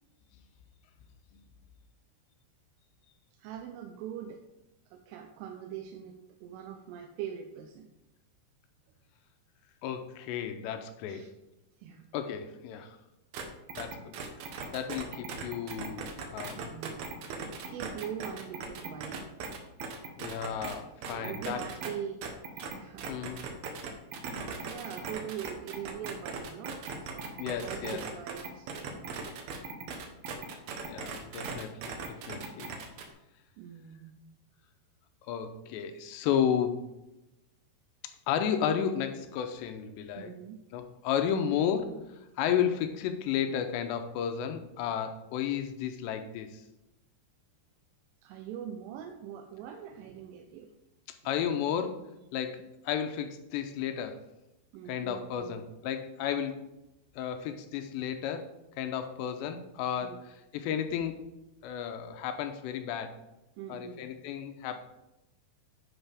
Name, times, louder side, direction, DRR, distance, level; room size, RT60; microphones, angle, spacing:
voice 1, 3.4-4.4 4.9-7.9 11.1-11.3 11.8-12.1 16.6-17.1 17.7-19.2 20.7-22.2 22.7-23.2 23.8-24.2 24.6-29.1 30.9-31.0 33.6-34.2 40.2-40.6 48.2-50.7 54.7-55.6 58.0-58.1 60.0-60.2 63.6-64.1, right 9 dB, 85° right, 4 dB, 3.2 m, -42 dB
voice 2, 9.8-11.2 12.1-13.0 13.8-14.1 14.7-16.8 20.2-21.6 23.1-23.4 27.4-28.0 30.8-32.7 35.3-36.8 38.3-40.3 40.7-42.0 42.4-46.6 51.3-54.2 54.9-56.6 57.2-61.2 61.6-63.2 63.7-64.8, left 8 dB, 80° left, 7 dB, 2.6 m, -33 dB
sound 1, 13.3-13.4 13.7-20.8 21.0-21.9 22.2-33.1, right 5 dB, 70° right, 2.4 m, -38 dB
9.7 x 8.0 x 3.5 m, 0.94 s
omnidirectional pair, 5.5 m